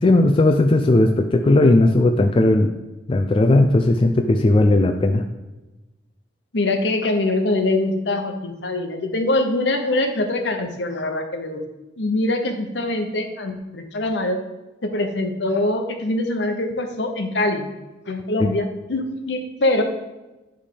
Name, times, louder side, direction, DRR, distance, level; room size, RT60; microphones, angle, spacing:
voice 1, 0.0-2.7 3.1-5.2 18.4-18.5, left 2 dB, 30° left, 5 dB, 0.3 m, -16 dB
voice 2, 6.5-11.6 12.0-14.4 14.8-17.7 18.1-19.8, left 2 dB, 65° left, 5 dB, 0.9 m, -23 dB
9.7 x 3.4 x 5.0 m, 1.1 s
head